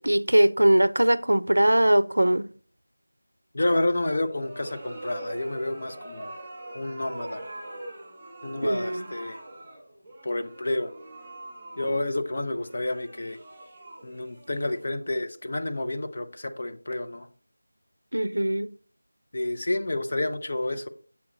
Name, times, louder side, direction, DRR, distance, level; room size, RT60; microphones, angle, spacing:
voice 1, 0.0-2.5 8.6-9.1 18.1-18.7, right 1 dB, 85° right, 0.4 m, -21 dB
voice 2, 3.5-6.3 6.7-7.5 8.4-9.4 10.2-10.9 11.8-13.4 14.0-17.3 19.3-20.9, left 1 dB, 40° left, 0.7 m, -29 dB
sound 1, 4.2-15.2, right 1 dB, 10° right, 2.5 m, -43 dB
7.1 x 4.8 x 3.8 m
figure-of-eight pair, 175°, 0 cm